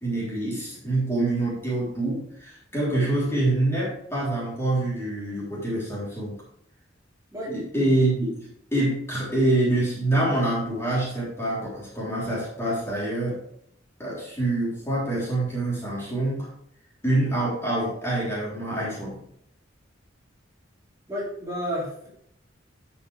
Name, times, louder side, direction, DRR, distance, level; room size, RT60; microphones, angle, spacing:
voice 1, 0.0-6.4 7.5-13.4 14.0-16.5 17.0-19.2, right 2 dB, 15° left, -8 dB, 3.6 m, -26 dB
voice 2, 21.1-22.1, equal, 20° right, -7 dB, 3.7 m, -31 dB
12.5 x 6.0 x 3.4 m, 0.69 s
head